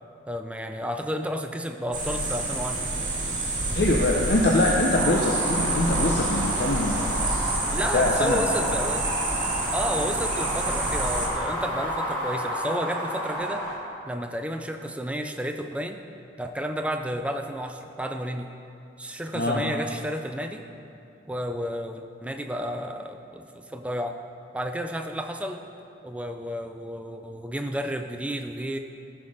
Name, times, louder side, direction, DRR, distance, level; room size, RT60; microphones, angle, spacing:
voice 1, 0.3-2.9 4.5-4.6 7.7-9.1 9.7-13.7 14.1-16.0 16.4-18.5 19.0-20.7 21.3-24.2 24.5-25.6 26.0-28.8, equal, 5° right, 5 dB, 0.4 m, -31 dB
sound 1, 1.9-11.3, right 2 dB, 45° right, 2.1 m, -28 dB
voice 2, 3.7-7.1 7.9-8.8 19.3-19.6, left 2 dB, 55° left, -1 dB, 0.7 m, -23 dB
sound 2, 4.9-13.7, equal, 15° left, 2.3 m, -31 dB
14.5 x 5.8 x 5.0 m, 2.8 s
head